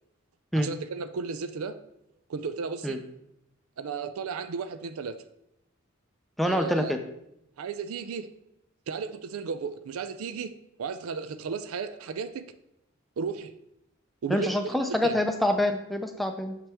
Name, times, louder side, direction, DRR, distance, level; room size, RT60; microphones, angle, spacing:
voice 1, 0.5-1.8 2.3-3.0 3.8-5.2 6.4-6.9 7.6-8.3 8.9-10.5 10.8-12.4 13.2-13.5 14.2-14.8 15.0-15.2, right 5 dB, 85° right, 12 dB, 0.4 m, -34 dB
voice 2, 6.4-7.0 14.3-16.6, left 1 dB, ahead, 5 dB, 0.4 m, -26 dB
6.7 x 5.8 x 3.5 m, 0.81 s
head